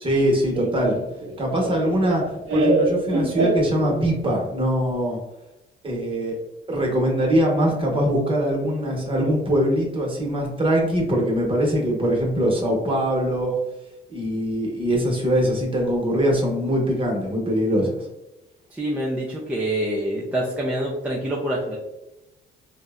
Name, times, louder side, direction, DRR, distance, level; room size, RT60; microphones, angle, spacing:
voice 1, 0.0-1.0 1.4-2.2 2.5-5.2 5.8-6.4 6.7-13.6 14.1-18.1, equal, 25° right, -1 dB, 0.9 m, -22 dB
Laughter, 0.5-4.2, right 2 dB, 70° right, 0.6 m, -24 dB
voice 2, 18.7-21.8, right 1 dB, 5° right, -5 dB, 0.4 m, -26 dB
2.8 x 2.0 x 2.3 m, 0.95 s
cardioid pair, 90°, 20 cm